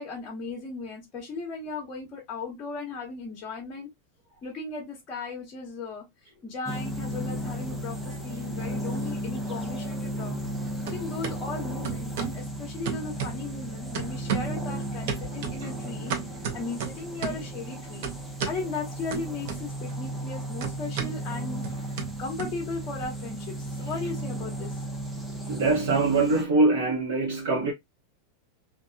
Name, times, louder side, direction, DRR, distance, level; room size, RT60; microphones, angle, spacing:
voice 1, 0.0-3.9 4.4-10.4 10.8-16.1 16.5-18.1 18.4-21.6 21.9-24.8, left 4 dB, 25° left, 0.8 m, -37 dB
sound 1, 6.7-26.4, right 1 dB, 5° right, 0.4 m, -35 dB
sound 2, 7.9-8.7 9.0-10.6 10.8-11.4 11.8-12.4 12.8-13.6 13.9-14.6 15.1-17.5 18.0-18.6 19.1-19.9 20.2-23.1, right 7 dB, 55° right, 0.7 m, -35 dB
voice 2, 25.4-27.7, right 3 dB, 80° right, 1.0 m, -23 dB
2.7 x 2.5 x 2.2 m
supercardioid pair, 165°, 0 cm